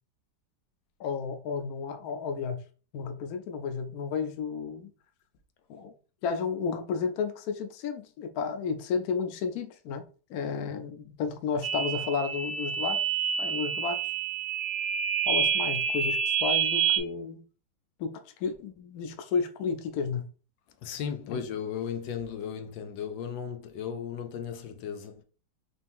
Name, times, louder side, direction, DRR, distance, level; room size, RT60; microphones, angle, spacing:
voice 1, 1.0-2.6 2.9-4.9 5.7-5.9 6.2-10.0 10.3-13.0 13.4-14.0 15.3-17.4 18.0-20.3 21.3-21.4, left 5 dB, 70° left, 1.0 m, -32 dB
sound 1, 11.6-17.0, right 7 dB, 60° right, 0.5 m, -28 dB
voice 2, 20.8-25.2, left 7 dB, 90° left, 1.4 m, -35 dB
4.2 x 2.7 x 3.5 m
omnidirectional pair, 2.0 m